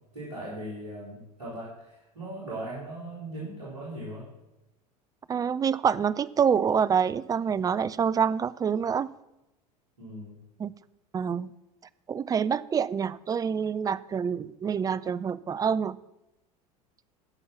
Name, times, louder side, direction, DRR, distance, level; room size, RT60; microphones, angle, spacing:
voice 1, 0.1-1.7 2.1-4.2 10.0-10.3, right 1 dB, 80° right, -9 dB, 4.3 m, -38 dB
voice 2, 5.3-9.1 10.6-10.7 11.1-11.5 12.1-16.0, right 7 dB, 20° right, 17 dB, 0.4 m, -26 dB
13.5 x 5.4 x 7.1 m, 0.93 s
figure-of-eight pair, 75°, 20 cm